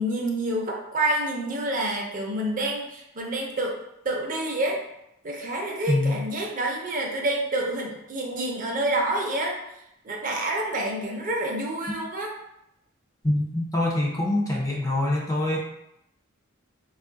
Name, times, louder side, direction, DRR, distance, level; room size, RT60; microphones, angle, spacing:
voice 1, 0.0-2.8 3.2-3.7 4.1-4.8 5.2-9.5 10.1-12.3, right 1 dB, 40° right, 0 dB, 0.6 m, -28 dB
voice 2, 5.9-6.2 13.2-15.6, left 1 dB, 15° left, -2 dB, 0.5 m, -24 dB
3.0 x 2.4 x 3.8 m, 0.84 s
head